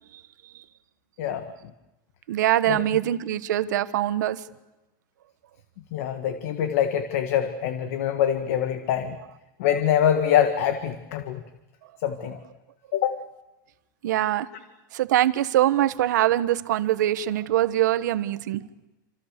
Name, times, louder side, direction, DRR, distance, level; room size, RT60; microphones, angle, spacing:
voice 1, 1.2-1.5 2.7-2.8 5.9-9.2 9.6-11.4 12.0-12.4 12.9-13.2, left 9 dB, 45° left, 8 dB, 1.6 m, -24 dB
voice 2, 2.3-4.4 14.0-14.5 14.9-18.6, right 13 dB, 55° right, 12 dB, 1.3 m, -23 dB
28.0 x 27.5 x 6.8 m, 1.0 s
supercardioid pair, 180°, 11 cm